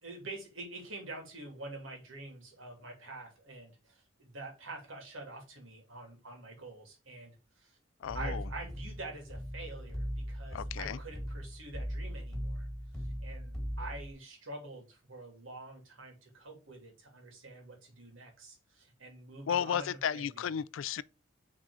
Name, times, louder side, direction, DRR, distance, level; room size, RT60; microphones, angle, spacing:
voice 1, 0.0-7.8 8.1-12.7 12.9-20.6, right 2 dB, 85° right, 2.8 m, -46 dB
voice 2, 8.0-8.4 10.5-11.0 19.5-21.0, left 8 dB, 80° left, 0.4 m, -33 dB
sound 1, 8.0-14.1, equal, 5° left, 1.7 m, -39 dB
6.2 x 3.8 x 4.8 m
head